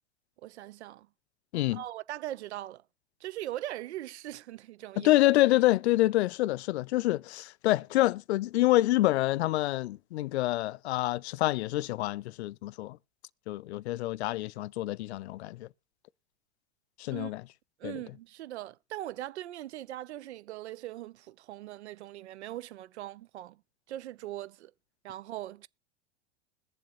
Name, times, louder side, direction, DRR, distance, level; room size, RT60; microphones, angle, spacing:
voice 1, 0.4-1.1 1.7-2.8 3.2-5.2 17.1-17.3 17.8-23.6 23.9-24.7 25.0-25.7, right 14 dB, 80° right, 0.5 m, -40 dB
voice 2, 5.0-13.0 13.5-15.7 17.0-17.4 17.8-18.0, left 17 dB, 70° left, 0.5 m, -27 dB
21.5 x 7.4 x 2.5 m
hypercardioid pair, 95°, 34 cm